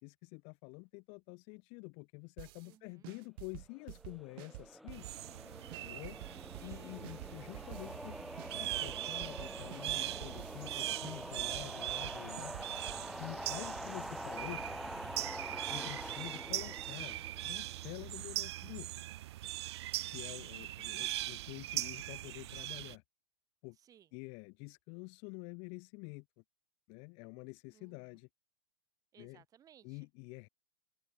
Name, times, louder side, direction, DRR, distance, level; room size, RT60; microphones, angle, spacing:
voice 1, 0.0-5.1 5.8-6.2 6.6-8.2 8.5-12.5 13.2-14.6 15.7-18.9 20.1-23.0 23.6-23.8 24.1-26.2 26.9-28.3 29.2-29.4 29.8-30.5, left 36 dB, 40° left, 1.2 m, -48 dB
sound 1, 2.4-2.7 3.0-5.4 5.7-8.1 8.4-10.7 11.0-13.0, right 24 dB, 50° right, 2.4 m, -50 dB
voice 2, 2.6-3.1 6.6-7.1 12.8-13.3 23.8-24.1 27.7-28.1 29.1-30.1, right 10 dB, 25° right, 4.6 m, -62 dB
sound 2, 3.9-18.2, equal, ahead, 3.2 m, -46 dB
sound 3, 4.9-22.9, right 15 dB, 65° right, 0.6 m, -41 dB
open air
hypercardioid pair, 140°, 15 cm